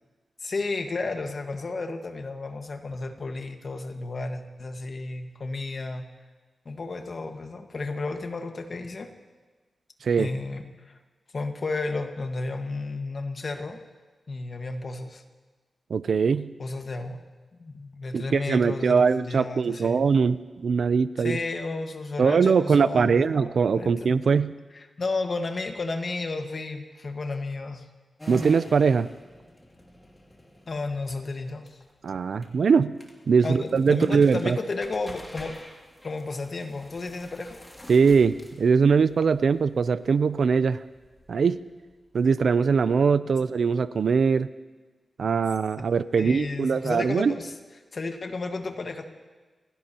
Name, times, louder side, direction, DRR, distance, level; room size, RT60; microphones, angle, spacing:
voice 1, 0.4-6.0 6.6-9.1 10.2-11.0 11.3-13.8 14.3-15.2 16.6-17.2 17.6-20.0 21.2-24.1 24.7-27.8 30.7-31.8 33.4-35.6 36.0-37.6 46.2-47.5 47.9-49.0, left 3 dB, 45° left, 5 dB, 1.5 m, -32 dB
voice 2, 15.9-16.5 18.1-21.4 22.2-24.5 28.3-29.1 32.0-32.9 33.3-34.6 37.9-40.8 41.3-41.6 42.1-44.5 45.2-47.3, right 5 dB, 70° right, 14 dB, 0.5 m, -22 dB
sound 1, 28.2-42.4, equal, 15° left, 2.5 m, -47 dB
30.0 x 16.5 x 2.9 m, 1.3 s
wide cardioid pair, 115°, 0 cm